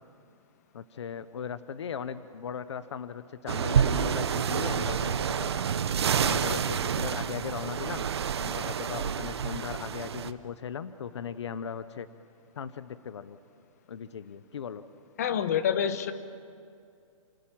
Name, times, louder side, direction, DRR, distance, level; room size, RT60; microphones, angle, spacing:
voice 1, 0.7-5.6 6.2-8.1 8.4-12.1 12.5-13.4 13.9-14.8, left 7 dB, 55° left, 14 dB, 0.9 m, -38 dB
sound 1, 3.5-10.3, right 8 dB, 50° right, 0.9 m, -28 dB
voice 2, 15.2-16.1, left 8 dB, 30° left, 12 dB, 1.0 m, -27 dB
29.0 x 17.5 x 8.8 m, 2.4 s
hypercardioid pair, 180°, 18 cm